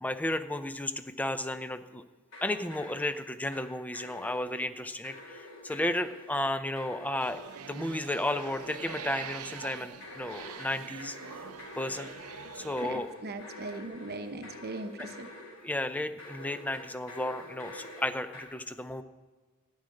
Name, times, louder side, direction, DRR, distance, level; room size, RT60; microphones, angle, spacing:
voice 1, 0.0-2.0 2.4-7.4 7.7-11.2 11.8-12.1 12.5-13.1 15.0-15.1 15.6-19.0, left 1 dB, 5° left, 10 dB, 0.5 m, -33 dB
sound 1, 2.3-3.7 3.9-4.7 5.0-6.4 6.8-7.8 8.2-9.4 10.0-15.7 16.2-18.4, left 2 dB, 70° left, 4.9 m, -47 dB
sound 2, 7.2-12.8, right 6 dB, 75° right, 0.7 m, -44 dB
voice 2, 12.8-15.3, right 2 dB, 45° right, 7 dB, 0.9 m, -39 dB
13.0 x 6.4 x 9.6 m, 1.4 s
head